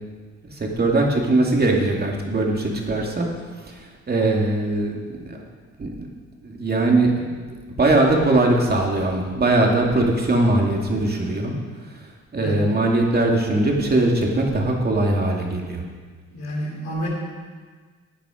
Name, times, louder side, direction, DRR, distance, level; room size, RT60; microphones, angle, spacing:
voice 1, 0.5-3.3 3.6-5.4 5.8-6.1 6.4-7.4 7.7-11.5 12.3-15.8, right 2 dB, 30° right, 0 dB, 2.5 m, -21 dB
voice 2, 12.4-12.7 16.3-17.1, equal, 90° left, -8 dB, 4.0 m, -29 dB
14.0 x 8.9 x 5.1 m, 1.5 s
cardioid pair, 90°, 30 cm